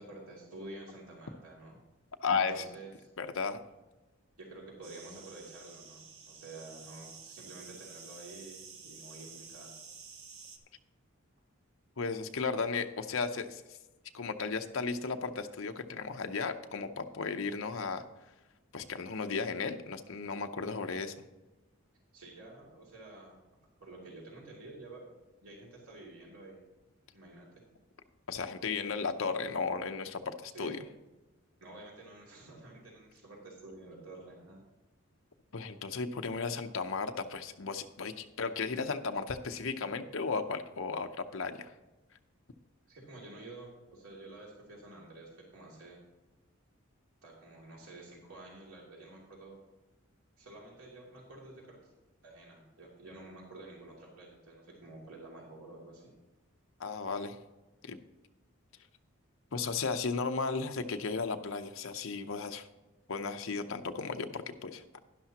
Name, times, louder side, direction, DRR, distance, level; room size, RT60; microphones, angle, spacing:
voice 1, 0.0-1.8 2.3-3.1 4.4-9.7 22.1-23.4 23.8-26.6 27.1-27.6 30.5-30.9 31.6-34.6 42.9-46.0 47.2-49.6 50.4-51.9 52.2-56.1, right 2 dB, 85° right, -3 dB, 2.7 m, -50 dB
voice 2, 2.2-2.7 3.2-3.6 12.0-13.6 14.1-18.0 18.7-21.3 28.3-30.8 35.5-41.7 56.8-57.4 57.8-58.0 59.5-62.7 63.1-64.8, left 4 dB, 70° left, 6 dB, 0.7 m, -35 dB
sound 1, 4.8-10.6, right 5 dB, 70° right, 1.1 m, -51 dB
11.5 x 11.0 x 2.9 m, 1.1 s
head